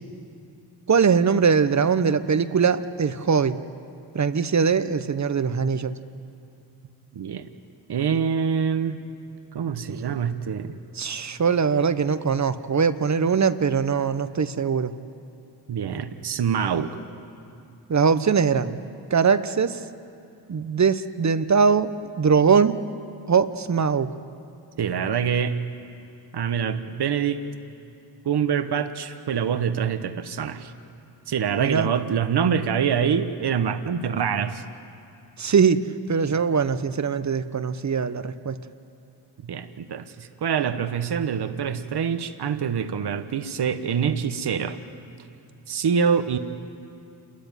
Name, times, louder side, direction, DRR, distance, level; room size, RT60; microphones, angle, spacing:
voice 1, 0.9-3.6 4.1-6.0 9.9-10.2 11.0-14.9 17.9-18.8 19.1-19.8 20.5-22.8 23.3-24.1 31.6-31.9 35.4-35.8 36.1-38.6, right 6 dB, 40° right, 13 dB, 1.0 m, -21 dB
voice 2, 7.1-7.5 7.9-9.0 9.5-10.8 15.7-17.0 24.8-25.6 26.3-27.4 28.2-30.7 31.3-34.6 39.4-44.8 45.7-46.4, right 7 dB, 60° right, 10 dB, 1.3 m, -25 dB
28.5 x 14.0 x 9.2 m, 2.6 s
cardioid pair, 65°, 44 cm